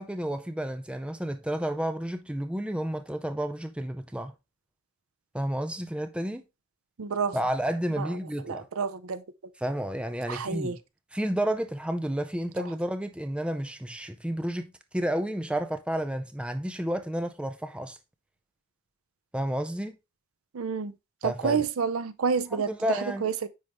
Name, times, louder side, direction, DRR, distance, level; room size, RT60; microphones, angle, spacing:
voice 1, 0.0-4.3 5.3-6.4 7.3-8.7 9.6-10.8 11.1-18.0 19.3-19.9 21.2-21.6 22.5-23.3, right 1 dB, 5° right, 0.4 m, -31 dB
voice 2, 7.0-7.4 8.0-8.1 8.4-9.2 10.3-10.8 12.6-12.7 20.5-20.9 21.2-23.5, right 5 dB, 75° right, 0.5 m, -29 dB
9.5 x 3.6 x 3.0 m
head